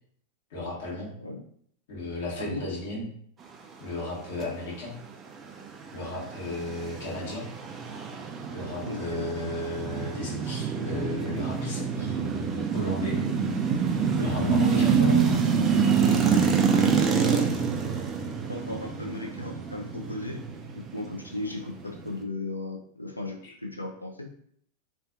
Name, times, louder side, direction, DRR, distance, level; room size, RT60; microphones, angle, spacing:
voice 1, 0.5-1.1 1.9-3.1 3.8-5.0 5.9-7.4 8.5-13.2 14.2-14.9, left 1 dB, 55° left, -5 dB, 1.1 m, -35 dB
sound 1, 5.5-22.2, right 6 dB, 25° right, 0.3 m, -26 dB
voice 2, 8.9-9.5 14.2-15.4 16.0-17.4 18.5-20.4 20.7-24.3, left 2 dB, 85° left, 0 dB, 0.4 m, -36 dB
2.5 x 2.4 x 2.4 m, 0.65 s
figure-of-eight pair, 90°, 0 cm